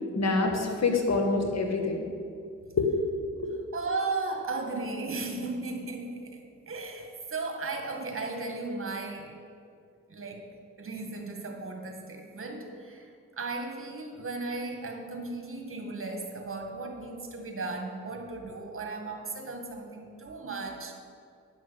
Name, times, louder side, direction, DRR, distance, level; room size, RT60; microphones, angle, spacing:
voice 1, 0.2-2.1 2.8-2.9 3.4-3.5, left 3 dB, 50° left, 3 dB, 1.8 m, -26 dB
voice 2, 3.7-9.4 10.1-10.4 10.8-20.9, right 3 dB, 40° right, 3 dB, 2.0 m, -36 dB
10.0 x 6.1 x 7.7 m, 2.4 s
supercardioid pair, 50°, 34 cm